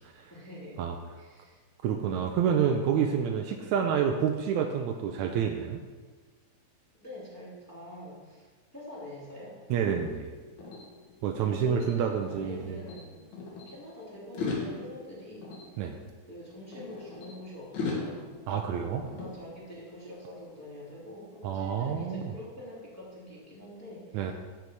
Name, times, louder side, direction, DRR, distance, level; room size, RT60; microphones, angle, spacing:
voice 1, 0.3-0.8 1.2-1.6 1.8-1.9 2.2-2.3 3.7-4.0 7.0-8.5 8.7-9.6 11.4-13.3 13.7-15.5 16.3-18.3 19.2-24.3, left 1 dB, 5° left, -7 dB, 2.1 m, -45 dB
voice 2, 1.8-5.8 9.7-10.3 11.2-12.8 15.8-16.0 18.5-19.1 21.4-22.3 24.1-24.3, right 7 dB, 80° right, 4 dB, 1.9 m, -28 dB
sound 1, 9.7-12.6 12.9-13.7 14.2-17.3 17.7-20.0, left 3 dB, 70° left, 3.0 m, -40 dB
11.5 x 5.7 x 4.7 m, 1.4 s
omnidirectional pair, 3.6 m